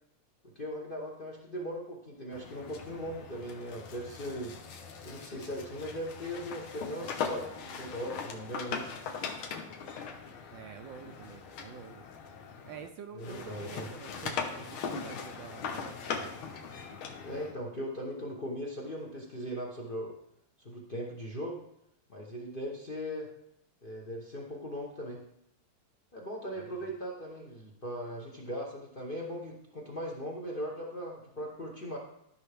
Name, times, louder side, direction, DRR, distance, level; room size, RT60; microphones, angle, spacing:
voice 1, 0.5-4.5 5.0-8.9 13.1-13.9 17.2-20.1 20.6-21.6 22.1-23.3 23.8-25.2 26.1-32.0, equal, 35° left, -1 dB, 0.8 m, -39 dB
sound 1, 2.3-12.9 13.2-17.5, left 5 dB, 75° left, 1.8 m, -40 dB
voice 2, 10.5-12.0 12.6-16.3 26.5-27.0, right 8 dB, 75° right, 7 dB, 1.2 m, -47 dB
13.5 x 5.6 x 3.5 m, 0.79 s
omnidirectional pair, 2.4 m